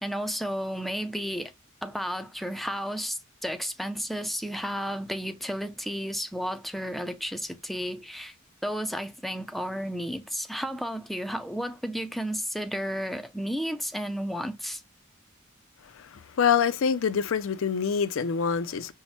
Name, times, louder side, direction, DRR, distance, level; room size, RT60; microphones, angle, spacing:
voice 1, 0.0-1.5 1.8-8.3 8.6-14.8, equal, ahead, 0.4 m, -32 dB
voice 2, 16.4-18.9, left 7 dB, 70° left, 0.4 m, -25 dB
5.5 x 2.1 x 3.0 m
head